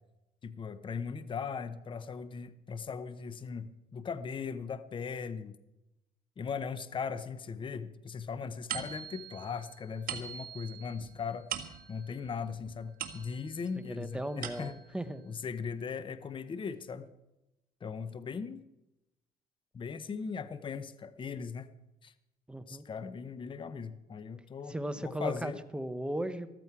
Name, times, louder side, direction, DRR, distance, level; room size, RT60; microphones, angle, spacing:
voice 1, 0.4-5.6 6.4-11.5 11.9-14.8 15.3-17.1 17.8-18.6 19.7-21.7 22.0-22.1 22.7-24.7 25.0-25.6, left 6 dB, 30° left, 13 dB, 0.8 m, -39 dB
sound 1, 8.7-13.7 14.1-15.0, right 9 dB, 55° right, 1.6 m, -42 dB
voice 2, 13.8-15.2 22.5-22.8 24.7-26.5, right 1 dB, 5° right, 10 dB, 0.9 m, -37 dB
14.0 x 14.0 x 4.7 m, 0.95 s
cardioid pair, 110°, 17 cm